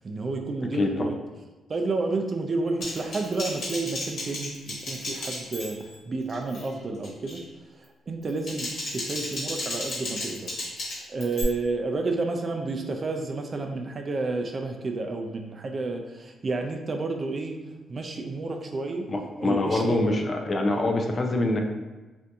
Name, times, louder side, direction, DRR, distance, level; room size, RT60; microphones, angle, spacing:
voice 1, 0.0-1.1 1.7-7.4 8.1-10.5 10.9-17.6 17.9-19.1 19.4-20.0, right 3 dB, 35° right, 4 dB, 0.4 m, -30 dB
voice 2, 0.7-1.1 19.1-21.6, left 2 dB, 35° left, 3 dB, 0.4 m, -25 dB
Typing, 2.8-6.0 6.3-6.7 7.0-7.4 8.2-11.4, left 2 dB, 70° left, 1.2 m, -34 dB
2.7 x 2.6 x 3.4 m, 1.2 s
cardioid pair, 105°, 0 cm